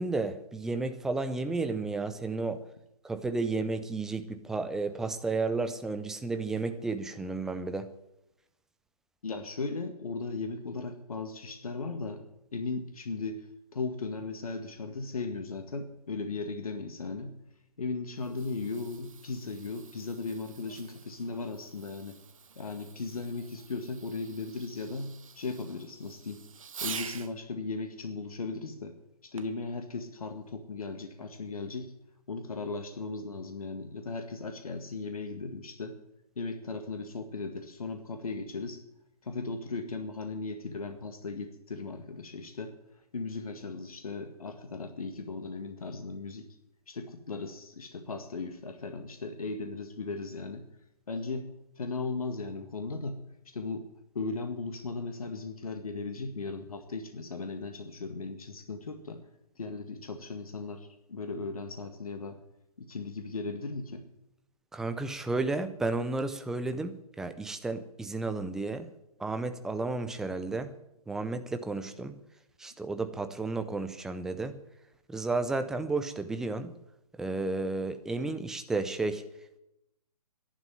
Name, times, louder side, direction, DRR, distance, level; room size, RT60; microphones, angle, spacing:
voice 1, 0.0-2.6 3.0-7.9 64.7-68.9 69.2-70.7 71.1-72.2 72.6-74.6 75.1-76.7 77.2-79.2, right 3 dB, ahead, 10 dB, 0.5 m, -32 dB
voice 2, 9.2-12.2 12.5-17.4 17.8-22.2 22.6-26.4 26.8-28.9 29.2-31.9 32.3-36.0 36.4-38.8 39.2-42.8 43.1-46.5 46.9-50.7 51.1-51.5 51.8-53.2 53.5-53.9 54.1-59.2 59.6-62.4 62.8-64.1, left 3 dB, 65° left, 6 dB, 1.9 m, -37 dB
Fireworks, 18.0-27.3 29.4-29.7 30.4-30.5, right 6 dB, 60° right, 1.0 m, -46 dB
11.5 x 10.5 x 9.6 m, 0.85 s
figure-of-eight pair, 135°, 20 cm